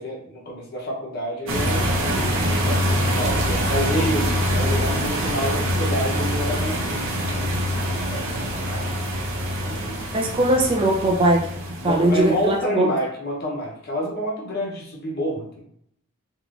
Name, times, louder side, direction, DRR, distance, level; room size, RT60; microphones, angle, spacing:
voice 1, 0.0-2.4 3.0-8.9 9.6-10.3 11.8-15.6, equal, 45° left, -3 dB, 0.8 m, -29 dB
sound 1, 1.5-12.6, equal, 60° right, 0.8 m, -24 dB
voice 2, 10.1-11.5 11.8-12.9, right 1 dB, 25° right, -1 dB, 0.4 m, -20 dB
3.6 x 2.9 x 2.4 m, 0.69 s
head